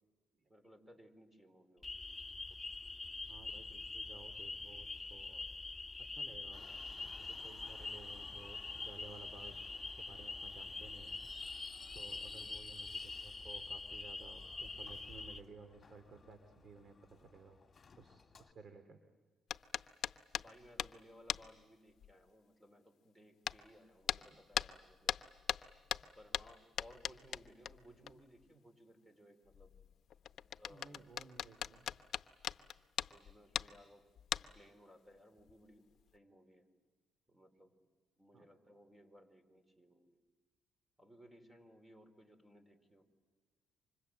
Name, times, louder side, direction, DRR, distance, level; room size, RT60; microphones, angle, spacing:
voice 1, 0.5-1.9 12.2-12.5 20.3-25.1 26.2-29.7 30.4-31.2 33.0-34.0 34.3-35.8 36.1-36.7 37.3-37.7 38.2-40.2 41.0-43.1, equal, 10° right, 8 dB, 4.3 m, -61 dB
sound 1, 1.8-15.4, left 3 dB, 15° left, 1.9 m, -45 dB
voice 2, 3.3-5.4 6.0-6.6 7.2-9.6 9.9-11.2 11.9-17.6 18.0-19.0 30.7-31.9 38.3-38.5, right 4 dB, 45° right, 8 dB, 2.6 m, -56 dB
Subway metro underground, 6.5-18.5, left 5 dB, 40° left, 1.9 m, -59 dB
sound 2, 19.5-21.0 21.3-21.6 22.0-22.1 23.5-23.6 24.1-24.3 24.5-28.1 28.4-28.5 29.5-33.8 34.2-34.7 35.4-35.5 36.0-36.2, left 9 dB, 65° left, 0.8 m, -40 dB
29.0 x 25.5 x 7.9 m, 1.4 s
cardioid pair, 90°, 0 cm